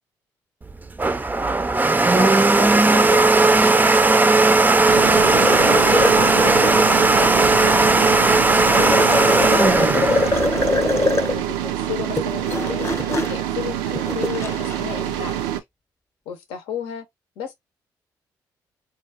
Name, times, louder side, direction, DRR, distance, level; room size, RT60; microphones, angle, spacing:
Domestic sounds home sounds, 0.6-11.3, right 3 dB, 20° right, 0.4 m, -17 dB
voice 1, 2.1-4.4 4.7-6.1 6.9-8.3 8.7-10.3 11.3-12.9 13.3-15.4 16.3-17.1 17.4-17.5, left 7 dB, 80° left, 0.7 m, -34 dB
sound 1, 4.9-15.6, right 11 dB, 90° right, 0.3 m, -26 dB
sound 2, 5.2-6.9 8.7-11.4 12.0-14.8, left 2 dB, 30° left, 0.7 m, -23 dB
4.1 x 2.3 x 2.7 m
hypercardioid pair, 45°, 9 cm